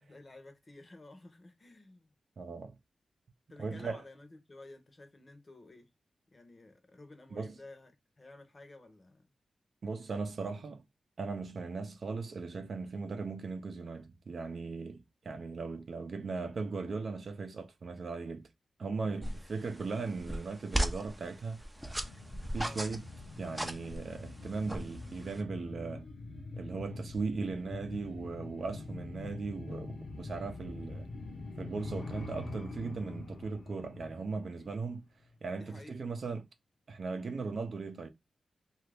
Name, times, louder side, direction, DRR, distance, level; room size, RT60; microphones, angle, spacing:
voice 1, 0.0-2.1 3.5-5.9 6.3-9.3 19.0-19.5 22.6-22.8 34.6-34.8 35.6-36.0, left 2 dB, 35° left, 0.8 m, -53 dB
voice 2, 2.4-2.8 3.6-4.0 7.3-7.5 9.8-10.8 11.2-18.5 18.8-21.6 22.5-23.0 23.4-26.1 26.6-31.1 31.6-35.0 35.4-36.5 36.9-38.1, right 4 dB, 60° right, 0.5 m, -38 dB
sound 1, 19.2-25.4, right 1 dB, 10° right, 0.5 m, -38 dB
sound 2, 21.8-35.0 35.3-35.4, left 3 dB, 65° left, 0.8 m, -44 dB
2.9 x 2.4 x 3.3 m
wide cardioid pair, 105°, 0 cm